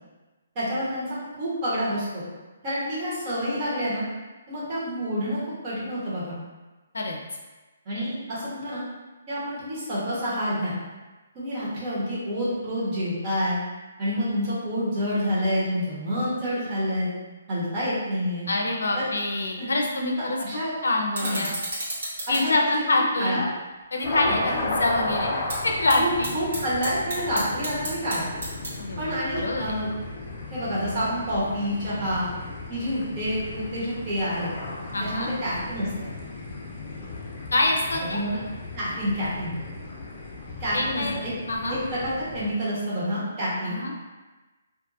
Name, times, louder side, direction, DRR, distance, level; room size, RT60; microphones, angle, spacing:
voice 1, 0.5-2.2 2.6-4.1 4.5-6.3 7.8-8.8 9.3-10.8 11.3-13.6 14.0-17.1 17.5-18.5 18.9-19.1 19.6-19.8 20.4-20.7 21.2-21.5 22.3-23.4 24.0-24.7 26.0-28.4 29.0-29.9 30.5-32.3 32.7-34.5 35.0-36.1 38.1-38.4 38.7-39.5 40.6-41.3 41.7-43.8, equal, 30° right, -10 dB, 1.0 m, -28 dB
voice 2, 18.5-20.4 20.8-21.5 22.3-23.5 23.9-25.3 25.6-26.3 28.8-29.7 34.9-35.3 37.5-38.2 40.7-41.2 41.5-41.8 43.6-44.0, left 2 dB, 90° left, 1 dB, 0.4 m, -25 dB
sound 1, 19.3-29.1, right 1 dB, 70° right, 1.2 m, -37 dB
sound 2, 24.0-42.5, left 2 dB, 35° left, 0.6 m, -35 dB
2.5 x 2.2 x 2.6 m, 1.2 s
hypercardioid pair, 160°, 0 cm